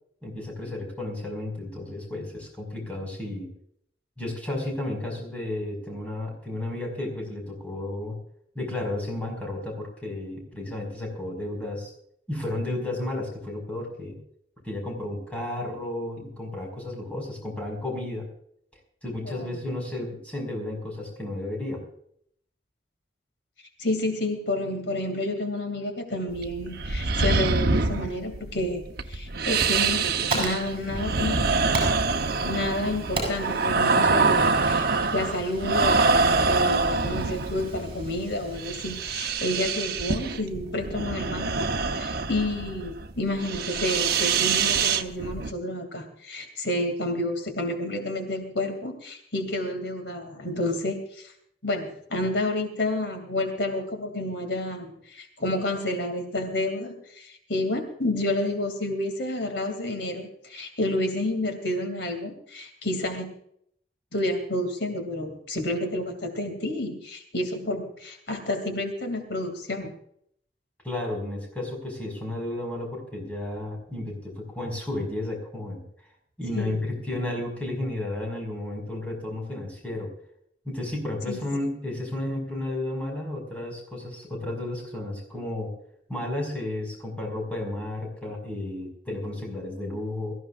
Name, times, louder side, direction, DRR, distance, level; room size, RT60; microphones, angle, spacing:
voice 1, 0.2-3.5 4.2-8.2 8.6-11.9 12.3-14.2 14.6-18.3 19.0-21.8 70.8-75.8 76.4-80.1 80.7-85.7 86.1-90.3, left 1 dB, 10° left, -1 dB, 5.5 m, -32 dB
voice 2, 23.8-31.8 32.4-41.7 42.0-51.3 51.6-63.3 64.1-69.9 76.5-76.8 81.3-81.4, left 1 dB, 80° left, 5 dB, 2.7 m, -30 dB
sound 1, 26.3-45.5, right 4 dB, 60° right, 1.0 m, -25 dB
Fire, 29.8-39.3, right 2 dB, 30° right, 8.0 m, -37 dB
23.5 x 15.0 x 2.5 m, 0.68 s
head